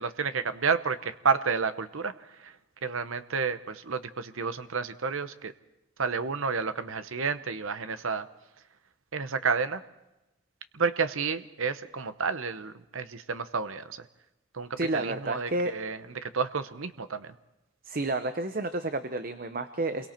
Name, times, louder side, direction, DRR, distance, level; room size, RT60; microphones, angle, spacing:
voice 1, 0.0-2.1 2.4-2.5 2.8-5.5 6.0-8.3 9.1-9.8 10.7-14.0 14.5-14.7 14.9-17.3, right 5 dB, 70° right, 12 dB, 0.9 m, -30 dB
voice 2, 14.8-15.8 17.8-20.1, right 2 dB, 40° right, 9 dB, 0.8 m, -30 dB
28.0 x 23.0 x 4.5 m, 0.96 s
head